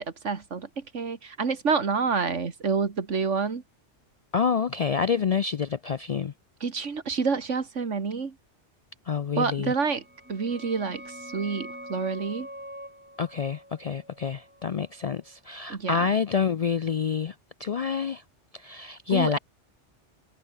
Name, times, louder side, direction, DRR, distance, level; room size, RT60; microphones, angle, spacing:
voice 1, 0.0-3.6 6.6-8.4 9.4-10.0 10.3-12.5 15.7-16.1 19.1-19.4, right 5 dB, 85° right, 2.2 m, -28 dB
voice 2, 4.3-6.3 9.1-9.7 13.2-17.3 17.6-18.2 18.5-19.4, left 6 dB, 55° left, 0.4 m, -27 dB
sound 1, 9.9-15.3, equal, 10° right, 3.6 m, -44 dB
omnidirectional pair, 1.2 m